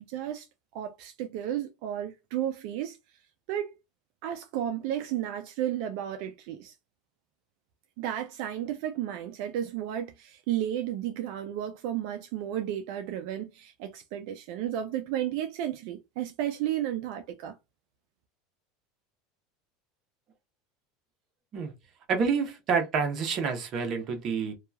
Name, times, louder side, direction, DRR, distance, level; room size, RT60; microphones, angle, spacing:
voice 1, 0.1-0.5 0.7-3.0 3.5-3.7 4.2-6.7 8.0-17.6, right 11 dB, 65° right, 0.4 m, -33 dB
voice 2, 22.1-24.5, right 5 dB, 40° right, 0.9 m, -28 dB
2.8 x 2.3 x 2.2 m
supercardioid pair, 135°, 0 cm